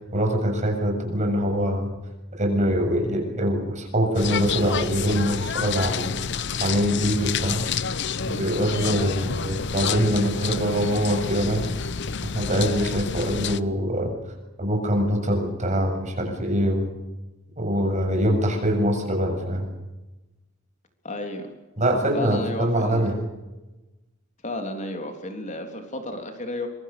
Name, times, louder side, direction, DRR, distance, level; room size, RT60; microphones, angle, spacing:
voice 1, 0.1-1.9 2.4-6.1 6.6-7.6 8.3-11.6 12.3-14.2 14.6-16.9 17.6-19.7 21.8-23.2, equal, 35° right, 3 dB, 7.5 m, -24 dB
sound 1, 4.1-13.6, left 6 dB, 60° left, 0.9 m, -29 dB
voice 2, 8.9-9.4 21.0-21.5 22.1-23.1 24.4-26.7, left 1 dB, 40° left, 4 dB, 3.5 m, -33 dB
25.5 x 24.0 x 6.9 m, 1.1 s
head